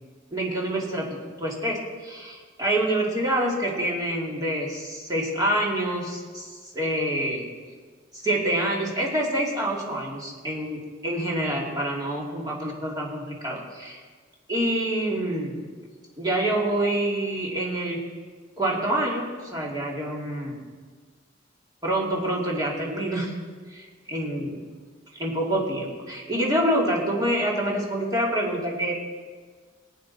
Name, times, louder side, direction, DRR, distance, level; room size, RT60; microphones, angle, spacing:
voice 1, 0.3-7.5 8.1-14.0 14.5-15.6 16.2-18.0 18.6-20.7 21.8-23.3 23.7-24.6 25.1-28.9, right 1 dB, 20° right, -3 dB, 2.5 m, -27 dB
20.0 x 8.7 x 4.2 m, 1.5 s
head